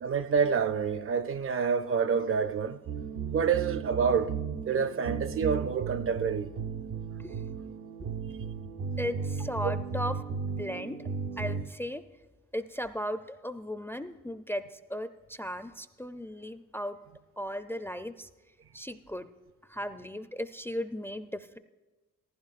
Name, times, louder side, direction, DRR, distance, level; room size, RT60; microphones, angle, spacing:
voice 1, 0.0-2.8 3.3-4.4 4.7-6.5, right 6 dB, 45° right, 0.5 m, -27 dB
sound 1, 2.9-11.6, right 5 dB, 85° right, 0.9 m, -35 dB
voice 2, 9.0-11.0 11.4-12.0 12.5-17.0 17.4-18.3 18.7-19.3 19.7-21.6, equal, 10° left, 0.4 m, -36 dB
15.0 x 14.5 x 2.4 m
cardioid pair, 90°, 30 cm